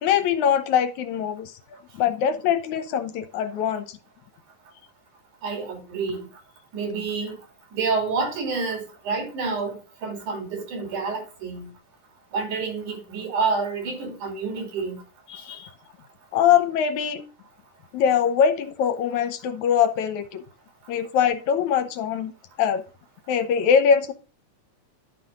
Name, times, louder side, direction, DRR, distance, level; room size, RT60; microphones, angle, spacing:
voice 1, 0.0-1.6 1.9-4.0 15.3-15.7 16.3-17.2 17.9-20.4 20.9-22.3 22.6-22.8 23.3-24.1, left 8 dB, 75° left, 2.2 m, -22 dB
voice 2, 5.4-6.3 6.7-7.4 7.7-11.7 12.3-15.0, right 4 dB, 75° right, 4.3 m, -28 dB
12.0 x 5.7 x 3.7 m
omnidirectional pair, 3.6 m